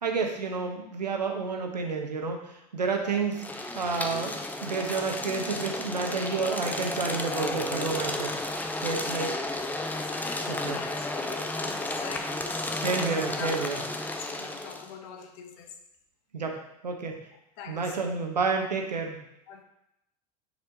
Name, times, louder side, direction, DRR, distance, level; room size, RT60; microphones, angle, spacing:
voice 1, 0.0-3.4 3.7-8.3 8.8-9.4 10.5-10.8 12.7-13.8 16.3-17.2 17.7-19.2, right 4 dB, 80° right, 3 dB, 1.1 m, -30 dB
sound 1, 3.3-14.9, left 2 dB, 10° left, 0.7 m, -33 dB
voice 2, 8.9-9.3 10.0-12.7 13.0-13.8 14.1-15.7 17.3-18.1 19.5-19.6, left 6 dB, 55° left, 5 dB, 1.1 m, -43 dB
9.9 x 4.8 x 2.8 m, 0.83 s
figure-of-eight pair, 80°, 21 cm